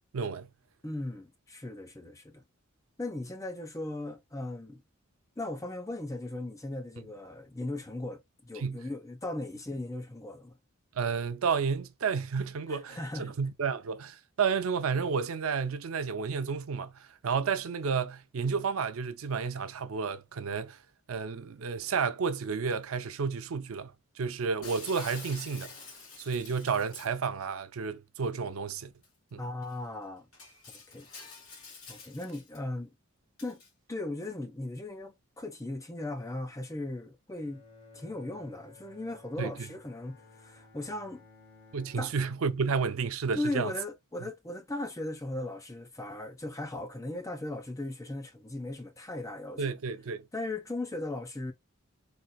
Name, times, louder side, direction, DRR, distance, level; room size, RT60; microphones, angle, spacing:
voice 1, 0.1-0.5 8.6-8.9 11.0-20.8 21.1-25.8 26.2-28.9 29.3-29.4 39.4-39.7 41.7-43.7 49.6-50.3, right 5 dB, 75° right, 0.5 m, -31 dB
voice 2, 0.8-2.4 3.0-4.8 5.4-10.6 12.7-13.3 29.4-30.3 30.9-31.1 31.9-32.9 33.4-33.6 33.9-37.6 37.9-41.2 42.0-42.1 43.3-49.6 50.3-51.5, left 2 dB, 15° left, 0.6 m, -37 dB
Shatter, 24.6-27.2 29.0-29.1 29.6-29.7 30.3-32.6 33.4-33.7, left 4 dB, 75° left, 2.4 m, -48 dB
Bowed string instrument, 37.3-42.8, left 3 dB, 50° left, 1.9 m, -56 dB
4.2 x 2.5 x 2.2 m
head